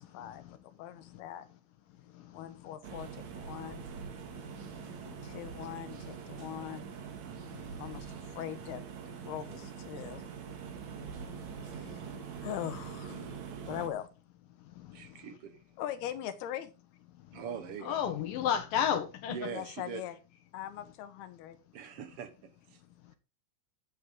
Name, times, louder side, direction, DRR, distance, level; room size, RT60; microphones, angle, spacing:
voice 1, 0.0-1.5 2.3-3.8 5.2-6.9 7.7-8.8 9.2-10.2 11.6-12.1 12.4-13.4 13.6-14.1 15.8-16.7 19.5-20.2 20.5-21.6, left 11 dB, 90° left, 3.2 m, -41 dB
sound 1, 2.8-13.9, right 7 dB, 55° right, 2.6 m, -44 dB
voice 2, 4.7-5.4 7.5-7.8 10.9-12.3 14.8-15.2 17.3-17.4 17.8-19.4, left 9 dB, 70° left, 2.4 m, -35 dB
voice 3, 14.9-15.6 17.3-18.1 19.3-20.0 21.7-22.8, right 7 dB, 75° right, 1.3 m, -42 dB
13.5 x 8.2 x 3.8 m
omnidirectional pair, 4.4 m